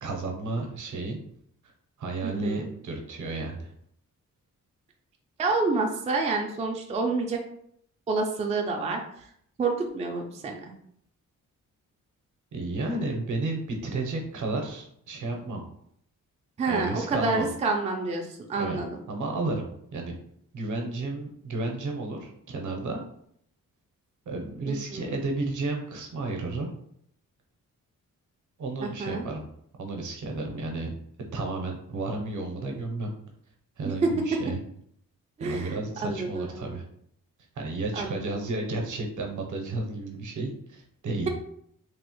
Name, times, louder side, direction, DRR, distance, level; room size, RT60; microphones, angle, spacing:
voice 1, 0.0-1.2 2.0-3.7 12.5-15.6 16.7-17.5 18.6-18.8 19.1-19.6 19.9-20.2 20.5-23.0 24.3-26.7 28.6-29.4 29.8-30.9 31.3-33.1 33.8-34.6 35.4-36.8 37.6-41.3, right 2 dB, 65° right, 2 dB, 0.7 m, -32 dB
voice 2, 2.2-2.7 5.4-7.4 8.1-9.3 9.6-10.6 16.6-19.0 24.7-25.2 28.8-29.2 33.8-34.1 35.4-36.7 37.9-38.2, right 3 dB, 20° right, 1 dB, 0.3 m, -28 dB
3.0 x 2.0 x 3.0 m, 0.69 s
wide cardioid pair, 110°, 33 cm